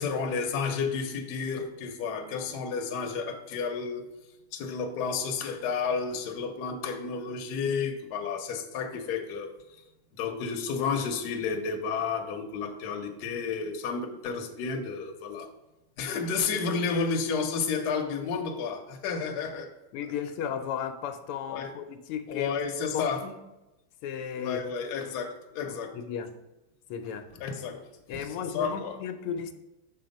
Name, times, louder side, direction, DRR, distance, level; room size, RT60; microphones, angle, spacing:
voice 1, 0.0-4.1 4.5-9.8 10.1-15.5 16.0-19.7 21.5-21.7 22.3-23.2 24.4-25.9 27.4-27.8 28.1-29.0, left 5 dB, 60° left, 4 dB, 1.1 m, -31 dB
voice 2, 19.9-22.7 22.9-23.3 24.0-24.6 25.6-26.3 26.9-27.2 28.1-29.5, left 7 dB, 90° left, 7 dB, 1.5 m, -34 dB
6.1 x 4.2 x 5.2 m, 0.99 s
omnidirectional pair, 2.4 m